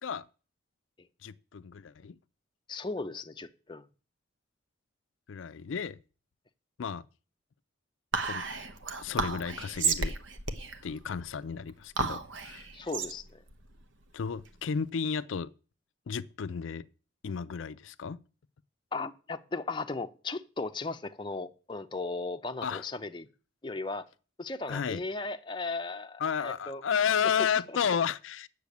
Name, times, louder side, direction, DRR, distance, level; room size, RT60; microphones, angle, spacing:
voice 1, 1.2-2.2 5.3-6.0 6.8-7.0 8.2-8.7 9.0-10.1 10.8-12.7 14.1-15.5 16.1-16.8 17.2-18.2 22.6-22.8 24.7-25.0 26.2-28.5, left 7 dB, 70° left, 0.4 m, -32 dB
voice 2, 2.7-3.8 12.7-13.4 18.9-23.3 23.6-24.1 24.4-26.8, left 3 dB, 25° left, 0.6 m, -36 dB
Whispering, 8.1-14.8, right 4 dB, 65° right, 1.0 m, -34 dB
8.2 x 6.7 x 8.4 m
head